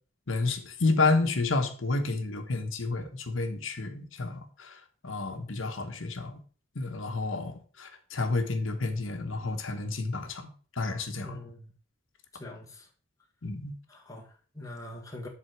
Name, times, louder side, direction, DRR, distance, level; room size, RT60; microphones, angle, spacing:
voice 1, 0.3-4.7 5.0-6.4 6.8-10.5 10.8-11.4 13.4-13.7, left 3 dB, 85° left, 6 dB, 1.1 m, -30 dB
voice 2, 11.2-11.7 12.3-12.9 13.9-15.3, left 1 dB, 15° left, 0 dB, 1.5 m, -43 dB
7.8 x 3.9 x 6.1 m, 0.41 s
head